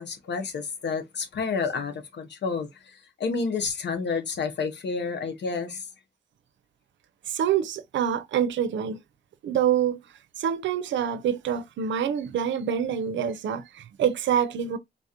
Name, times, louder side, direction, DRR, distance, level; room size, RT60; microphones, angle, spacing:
voice 1, 0.0-5.8, left 4 dB, 70° left, 0.9 m, -30 dB
voice 2, 7.3-9.0 9.4-10.0 10.4-14.8, right 9 dB, 85° right, 0.5 m, -26 dB
3.9 x 2.4 x 2.8 m
cardioid pair, 60°, 19 cm